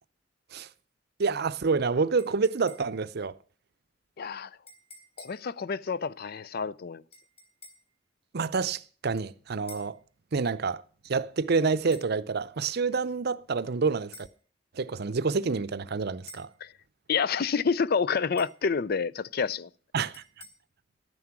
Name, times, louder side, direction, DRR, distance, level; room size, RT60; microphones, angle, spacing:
voice 1, 1.2-3.3 8.3-10.0 10.3-14.3 14.7-16.5 19.9-20.2, right 4 dB, 55° right, 0.6 m, -28 dB
sound 1, 2.2-3.1 4.7-5.5 7.1-7.9 9.7-10.0 11.9-12.1 14.1-14.4 16.3-16.6 18.4-18.7 20.1-20.5, left 2 dB, 30° left, 3.6 m, -50 dB
voice 2, 4.2-4.5 5.2-7.0 16.6-16.7 17.1-19.7, left 5 dB, 50° left, 0.5 m, -28 dB
12.0 x 9.6 x 6.0 m
head